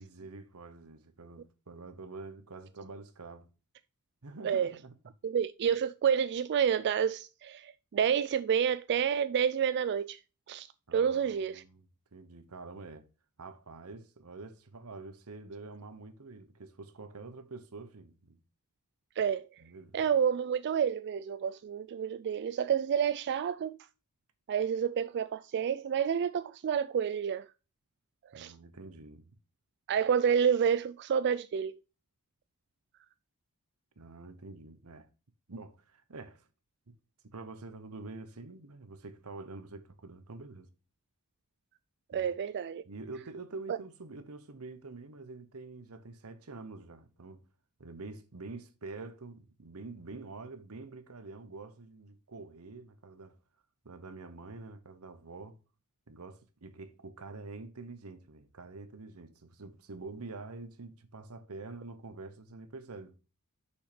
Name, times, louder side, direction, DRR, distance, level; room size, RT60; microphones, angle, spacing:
voice 1, 0.0-3.5 4.2-5.0 10.9-13.1 13.4-18.4 19.6-20.0 28.3-29.3 34.0-35.1 35.5-36.5 36.9-37.0 37.3-40.7 42.1-42.3 42.9-47.5 47.8-53.4 53.8-55.6 56.1-63.2, right 3 dB, 75° right, 1.1 m, -46 dB
voice 2, 5.2-10.2 10.5-10.7 10.9-11.6 19.2-19.5 19.9-23.7 24.5-27.5 28.3-28.5 29.9-31.7 42.1-42.8, right 7 dB, 50° right, 0.3 m, -29 dB
6.4 x 5.8 x 5.0 m
head